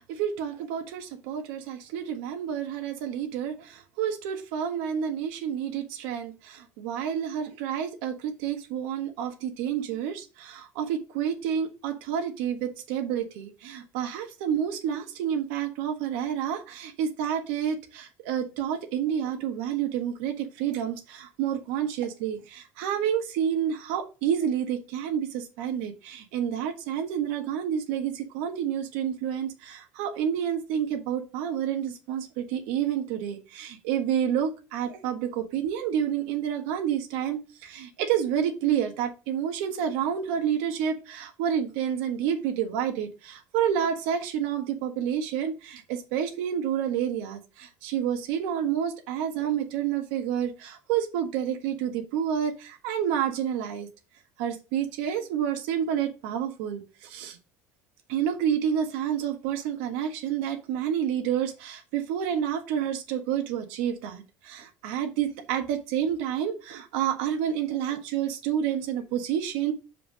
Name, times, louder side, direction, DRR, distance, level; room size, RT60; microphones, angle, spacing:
voice 1, 0.0-53.9 54.4-57.4 58.1-69.7, right 9 dB, 90° right, 5 dB, 1.5 m, -29 dB
5.5 x 4.8 x 6.1 m, 0.31 s
cardioid pair, 165°, 6 cm